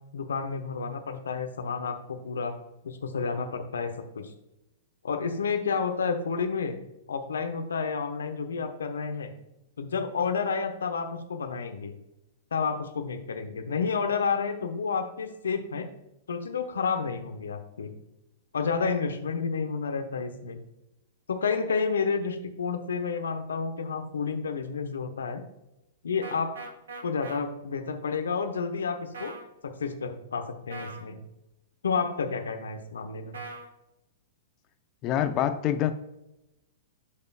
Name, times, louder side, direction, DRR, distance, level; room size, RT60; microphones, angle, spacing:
voice 1, 0.1-2.5 2.8-4.3 5.0-6.8 7.1-9.3 9.8-11.9 12.5-15.9 16.3-17.9 18.5-20.6 21.3-25.4 26.0-26.6 27.0-29.3 29.8-31.2 31.8-33.4, left 5 dB, 65° left, 6 dB, 1.0 m, -30 dB
sound 1, 26.2-27.4 29.1-29.5 30.7-31.0 33.3-33.7, right 3 dB, 65° right, 1.3 m, -40 dB
voice 2, 35.0-35.9, left 11 dB, 30° left, 8 dB, 0.7 m, -25 dB
13.0 x 5.4 x 2.3 m, 0.90 s
figure-of-eight pair, 105°, 0 cm